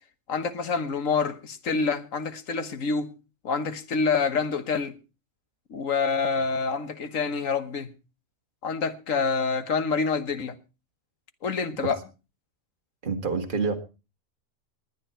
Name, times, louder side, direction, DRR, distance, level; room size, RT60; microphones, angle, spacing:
voice 1, 0.3-3.1 3.4-4.9 5.7-7.9 8.6-10.5 11.4-12.0, left 5 dB, 90° left, 1.7 m, -27 dB
voice 2, 13.0-13.8, right 4 dB, 40° right, 1.8 m, -27 dB
20.5 x 9.6 x 4.4 m
omnidirectional pair, 1.3 m